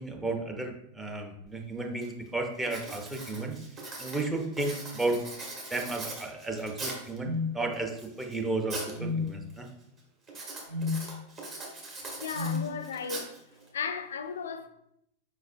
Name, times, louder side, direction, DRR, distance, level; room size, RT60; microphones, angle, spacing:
voice 1, 0.0-3.6 4.0-5.2 5.7-9.7, right 2 dB, 10° right, 0.7 m, -33 dB
Writing, 1.5-1.6 2.0-2.3 2.6-7.2 7.7-9.0 9.3-9.7 10.3-13.7, right 2 dB, 30° right, 1.3 m, -41 dB
sound 1, 7.2-7.5 8.9-9.3 10.7-11.0 12.3-12.6, left 4 dB, 60° right, 1.7 m, -30 dB
voice 2, 12.2-13.3 13.7-14.7, left 6 dB, 65° left, 0.4 m, -35 dB
4.9 x 4.0 x 2.6 m
figure-of-eight pair, 90°, 0 cm